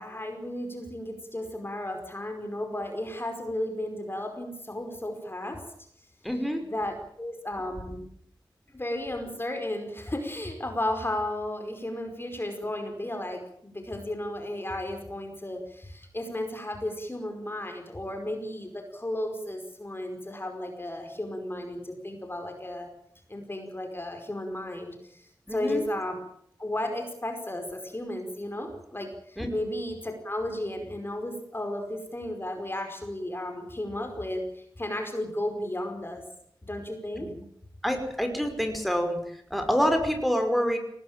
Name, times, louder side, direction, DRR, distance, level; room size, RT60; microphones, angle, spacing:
voice 1, 0.0-5.6 6.3-8.1 8.7-22.9 23.3-26.2 26.6-36.2 36.6-37.3, left 1 dB, 25° left, 5 dB, 5.0 m, -34 dB
voice 2, 6.2-6.6 25.5-25.8 29.4-29.5 37.2-37.3 37.8-40.8, equal, ahead, 5 dB, 5.6 m, -27 dB
19.5 x 18.5 x 9.1 m, 0.69 s
cardioid pair, 50°, 9 cm